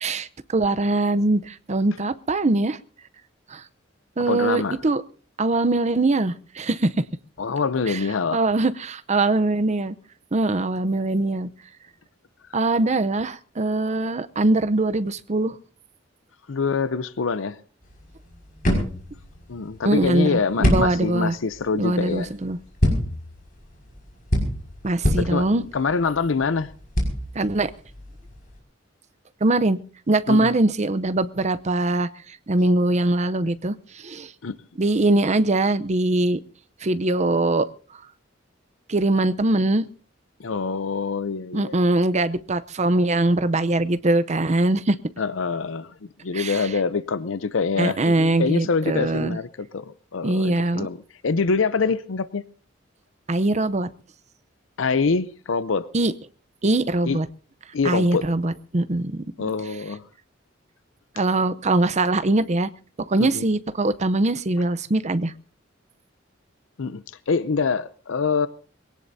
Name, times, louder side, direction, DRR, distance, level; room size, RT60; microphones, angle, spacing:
voice 1, 0.0-2.8 3.5-3.6 4.2-5.0 5.4-6.9 7.9-8.0 8.3-9.9 10.3-11.5 12.5-15.6 19.8-21.3 21.8-22.6 24.8-25.6 27.3-27.7 29.4-29.8 30.1-34.3 34.8-36.4 36.8-37.7 38.9-39.8 41.5-45.0 46.3-46.7 47.8-49.4 50.2-50.9 53.3-53.9 55.9-56.1 56.6-57.3 57.8-59.2 61.2-62.7 63.0-65.3, right 2 dB, 35° right, 0.7 m, -22 dB
voice 2, 4.3-4.8 7.4-8.5 16.5-17.6 19.5-22.3 25.2-26.7 30.3-30.5 34.4-34.6 40.4-41.8 45.2-52.4 54.8-55.9 57.0-57.2 57.7-58.3 59.4-60.0 63.2-63.4 66.8-68.5, left 4 dB, 85° left, 0.6 m, -25 dB
sound 1, 17.8-28.6, equal, 45° left, 5.5 m, -27 dB
22.5 x 17.5 x 2.7 m
head